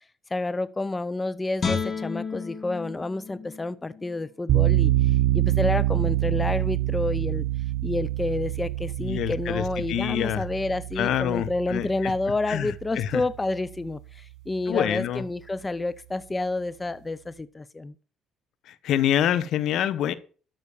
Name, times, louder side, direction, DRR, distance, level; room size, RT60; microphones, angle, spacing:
voice 1, 0.3-7.5 7.8-17.9, left 2 dB, 20° left, 16 dB, 0.6 m, -29 dB
Guitar, 1.6-4.7 5.2-5.3, left 5 dB, 40° left, 2.9 m, -33 dB
sound 1, 4.5-13.4, right 15 dB, 70° right, 1.9 m, -26 dB
voice 2, 9.0-10.5 11.0-12.1 12.5-13.2 14.7-15.2 18.7-20.1, left 11 dB, 70° left, 14 dB, 1.2 m, -26 dB
12.5 x 6.5 x 7.1 m, 0.39 s
supercardioid pair, 85°, 0 cm